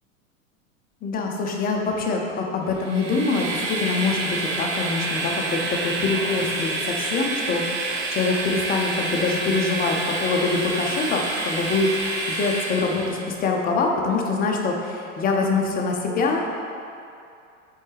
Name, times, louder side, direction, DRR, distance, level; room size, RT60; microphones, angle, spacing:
voice 1, 1.0-16.4, left 4 dB, 20° left, 1 dB, 0.6 m, -24 dB
Train, 2.7-13.2, right 2 dB, 30° right, 0.9 m, -28 dB
7.2 x 3.9 x 3.3 m, 2.5 s
figure-of-eight pair, 90°, 41 cm